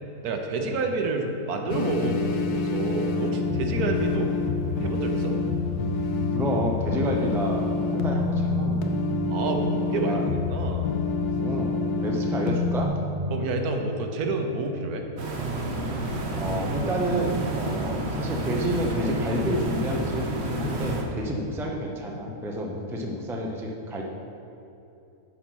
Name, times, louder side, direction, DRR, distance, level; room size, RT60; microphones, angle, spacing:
voice 1, 0.2-4.3 4.6-5.3 9.3-10.9 13.3-15.1 21.3-21.5, right 3 dB, 75° right, 4 dB, 1.3 m, -29 dB
sound 1, 1.7-12.9, left 3 dB, 80° left, 1.2 m, -26 dB
voice 2, 6.3-8.9 9.9-10.2 11.4-12.9 16.4-24.0, equal, 5° right, -1 dB, 0.4 m, -30 dB
sound 2, 15.2-21.0, right 2 dB, 50° right, 1.1 m, -29 dB
9.3 x 4.3 x 6.1 m, 2.8 s
omnidirectional pair, 1.6 m